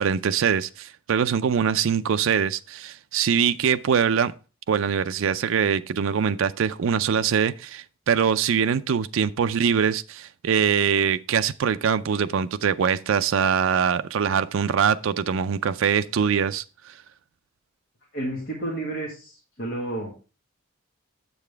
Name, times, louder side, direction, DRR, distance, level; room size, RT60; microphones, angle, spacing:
voice 1, 0.0-4.3 4.7-16.9, right 7 dB, 65° right, 0.4 m, -23 dB
voice 2, 18.1-20.3, right 1 dB, 45° left, 1.8 m, -31 dB
7.5 x 7.0 x 3.3 m
head